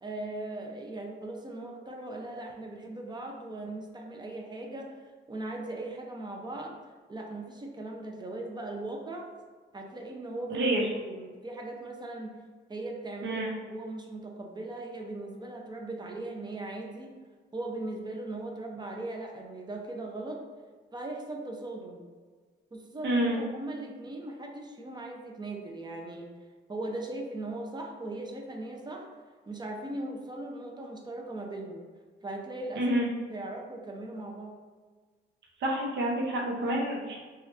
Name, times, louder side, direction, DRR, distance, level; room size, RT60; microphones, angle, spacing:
voice 1, 0.0-4.9 5.3-6.7 7.1-9.3 9.7-10.6 11.1-12.3 12.7-17.1 17.5-20.4 20.9-22.0 22.7-26.3 26.7-29.1 29.5-31.8 32.2-32.9 33.3-34.6, right 2 dB, 20° right, 1 dB, 0.5 m, -39 dB
voice 2, 10.5-10.9 13.2-13.5 23.0-23.4 32.7-33.1 35.6-37.2, right 1 dB, 65° right, -2 dB, 0.8 m, -28 dB
2.9 x 2.4 x 3.2 m, 1.5 s
cardioid pair, 90°, 20 cm